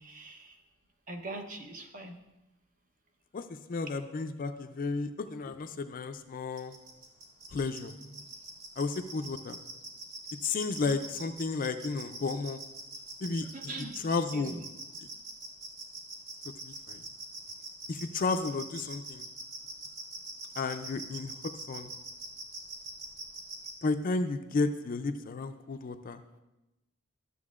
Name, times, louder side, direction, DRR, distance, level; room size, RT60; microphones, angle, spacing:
voice 1, 0.0-0.6 1.1-2.1 13.5-14.0 14.3-14.6, right 2 dB, 40° right, 4 dB, 0.8 m, -41 dB
voice 2, 3.3-6.8 7.5-7.9 8.8-9.6 10.4-12.6 13.2-13.5 13.8-14.6 16.6-17.0 17.9-19.3 20.6-21.9 23.8-26.2, left 3 dB, 45° left, 8 dB, 0.4 m, -33 dB
sound 1, 6.6-23.7, right 3 dB, 80° right, 1.6 m, -42 dB
12.5 x 7.1 x 2.4 m, 0.99 s
head